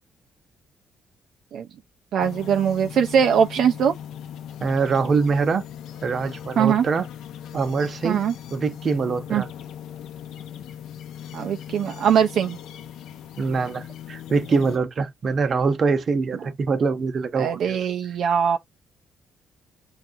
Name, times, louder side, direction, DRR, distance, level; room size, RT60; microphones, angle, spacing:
voice 1, 2.1-3.9 6.6-6.8 8.0-8.3 9.3-9.4 11.3-12.6 17.4-18.6, right 8 dB, 70° right, 0.4 m, -21 dB
sound 1, 2.2-14.8, left 9 dB, 85° left, 0.5 m, -39 dB
voice 2, 4.6-5.6 6.0-7.1 7.5-8.2 8.5-9.5 13.4-17.8, right 4 dB, 50° right, 0.7 m, -24 dB
5.7 x 2.4 x 2.7 m
cardioid pair, 90°, 0 cm